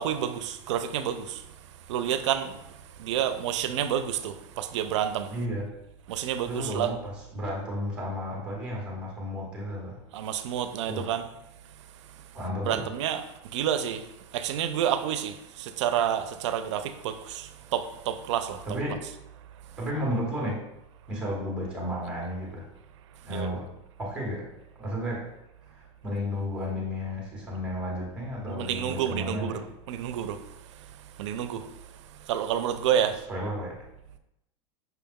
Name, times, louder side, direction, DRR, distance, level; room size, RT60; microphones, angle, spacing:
voice 1, 0.0-1.4 1.9-2.5 3.0-5.3 6.1-6.9 10.1-11.3 12.6-13.2 13.5-14.0 14.3-18.6 23.3-23.5 28.5-29.6 29.9-30.4 31.2-31.7 32.3-33.2, right 9 dB, 85° right, 0.4 m, -29 dB
voice 2, 5.3-5.7 6.5-10.0 10.9-11.1 12.3-12.9 18.7-19.0 19.8-20.6 21.1-22.7 23.2-23.7 24.0-24.5 24.8-25.2 25.7-29.6 33.3-33.8, equal, 5° right, 0.9 m, -33 dB
5.7 x 2.3 x 3.5 m
supercardioid pair, 170°, 15 cm